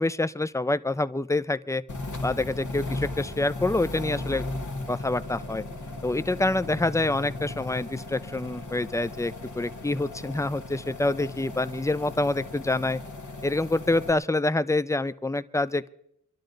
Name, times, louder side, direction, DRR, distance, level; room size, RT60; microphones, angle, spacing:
voice 1, 0.0-1.8 2.2-4.4 4.9-5.6 6.0-13.0 13.4-15.9, left 2 dB, 10° left, 15 dB, 0.5 m, -26 dB
sound 1, 1.9-14.1, left 2 dB, 70° left, 1.2 m, -36 dB
24.0 x 12.0 x 3.9 m, 0.75 s
wide cardioid pair, 45°, 31 cm